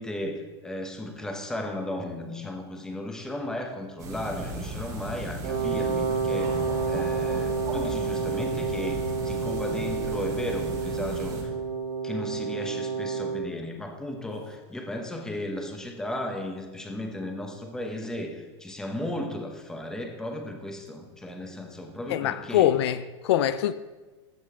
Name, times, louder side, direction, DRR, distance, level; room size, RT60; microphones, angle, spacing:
voice 1, 0.0-6.6 6.9-9.0 9.2-11.5 12.0-22.7, left 1 dB, 5° left, 0.8 m, -35 dB
sound 1, 4.0-11.4, right 1 dB, 25° right, 1.3 m, -36 dB
Wind instrument woodwind instrument, 5.4-13.5, right 5 dB, 85° right, 2.0 m, -29 dB
voice 2, 22.1-23.7, left 12 dB, 65° left, 0.4 m, -24 dB
14.5 x 5.1 x 3.6 m
supercardioid pair, 160°, 15 cm